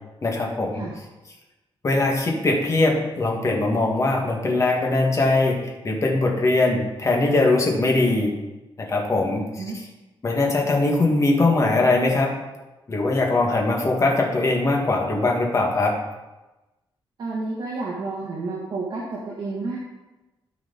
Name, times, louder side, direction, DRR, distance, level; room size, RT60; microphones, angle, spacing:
voice 1, 0.2-0.8 1.8-8.3 8.8-9.6 10.2-12.3 12.9-15.9, left 2 dB, 35° left, 0 dB, 1.7 m, -21 dB
voice 2, 17.2-19.8, right 3 dB, 55° right, -4 dB, 1.4 m, -30 dB
13.0 x 5.0 x 4.0 m, 1.1 s
wide cardioid pair, 145°, 9 cm